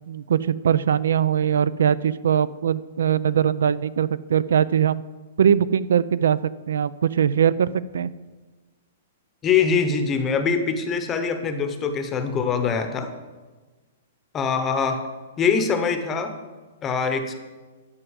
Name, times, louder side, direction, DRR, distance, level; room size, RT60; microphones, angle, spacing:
voice 1, 0.1-5.0 5.4-8.1, right 8 dB, 85° right, 18 dB, 0.4 m, -21 dB
voice 2, 9.4-13.1 14.3-15.0 15.4-16.3 16.8-17.3, left 6 dB, 15° left, 7 dB, 0.8 m, -23 dB
11.0 x 6.0 x 8.0 m, 1.3 s
hypercardioid pair, 175°, 0 cm